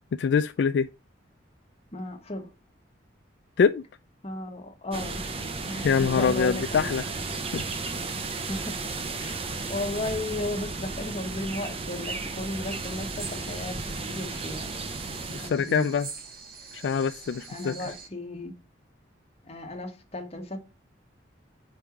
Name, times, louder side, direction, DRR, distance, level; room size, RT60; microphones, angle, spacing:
voice 1, 0.1-0.9 3.6-3.8 5.8-7.0 7.5-7.6 15.3-16.1 16.7-17.7, left 6 dB, 65° left, 0.3 m, -24 dB
voice 2, 1.9-2.5 4.2-5.3 5.7-6.9 8.5-8.9 9.2-14.7 15.4-15.9 17.5-18.5 19.4-20.6, left 1 dB, 35° left, 1.4 m, -35 dB
sound 1, 4.9-15.5, right 3 dB, 30° right, 0.7 m, -34 dB
sound 2, 12.7-18.1, right 5 dB, 55° right, 1.1 m, -44 dB
5.4 x 4.5 x 4.8 m
head